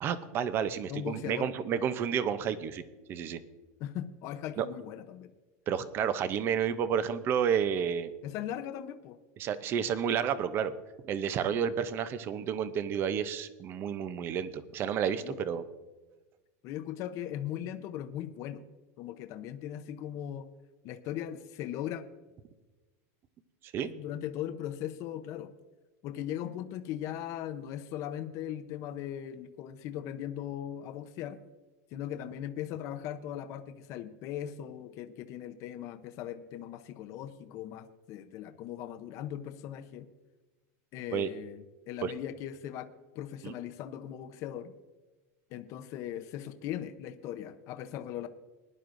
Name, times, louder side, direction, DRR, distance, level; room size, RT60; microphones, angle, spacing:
voice 1, 0.0-2.8 3.1-3.4 4.6-4.7 5.7-8.1 9.4-10.7 11.0-15.6 23.6-23.9 41.1-41.3 42.0-42.1 43.4-43.5, right 8 dB, 25° right, 13 dB, 0.6 m, -31 dB
voice 2, 0.9-1.5 3.8-5.3 8.2-9.2 15.2-15.4 16.6-18.6 19.0-20.5 20.8-22.0 23.8-25.5 26.0-31.4 31.9-40.1 40.9-42.9 43.1-44.7 45.5-48.3, left 11 dB, 35° left, 9 dB, 0.7 m, -39 dB
20.0 x 11.0 x 2.6 m, 1.2 s
supercardioid pair, 170°, 9 cm